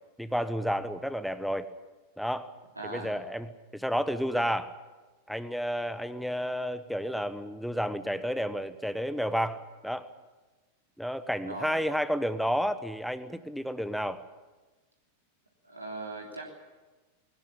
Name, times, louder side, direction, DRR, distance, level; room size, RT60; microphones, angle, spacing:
voice 1, 0.2-1.7 2.2-2.5 2.8-4.7 5.3-10.1 11.0-14.2, equal, ahead, 12 dB, 1.1 m, -31 dB
voice 2, 2.7-3.1 11.4-11.8 15.6-16.5, right 2 dB, 85° right, -1 dB, 3.2 m, -39 dB
21.0 x 18.5 x 8.6 m, 1.2 s
figure-of-eight pair, 90°, 0 cm